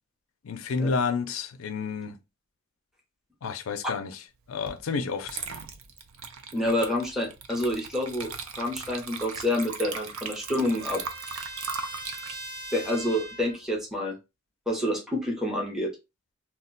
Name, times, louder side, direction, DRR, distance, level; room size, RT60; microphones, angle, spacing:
voice 1, 0.4-2.2 3.4-4.2 4.5-5.4, left 5 dB, 75° left, 0.4 m, -30 dB
Water / Liquid, 4.7-4.8 5.2-13.8, right 5 dB, 75° right, 0.5 m, -39 dB
voice 2, 6.5-11.0 12.7-14.2 14.7-15.9, left 1 dB, ahead, 0.7 m, -28 dB
Trumpet, 9.2-13.6, right 2 dB, 25° right, 1.0 m, -42 dB
2.3 x 2.1 x 3.8 m
head